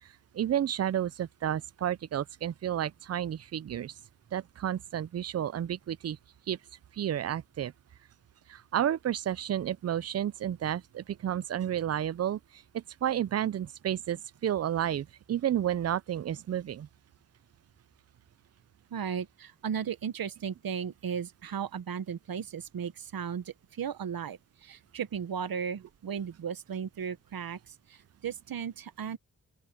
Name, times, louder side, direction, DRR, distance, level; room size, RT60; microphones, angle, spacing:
voice 1, 0.3-3.9 4.3-6.2 6.5-6.6 6.9-7.7 8.5-16.9, right 10 dB, 50° right, 0.4 m, -31 dB
voice 2, 18.9-29.2, right 7 dB, 85° right, 1.0 m, -36 dB
open air
wide cardioid pair, 75°, 35 cm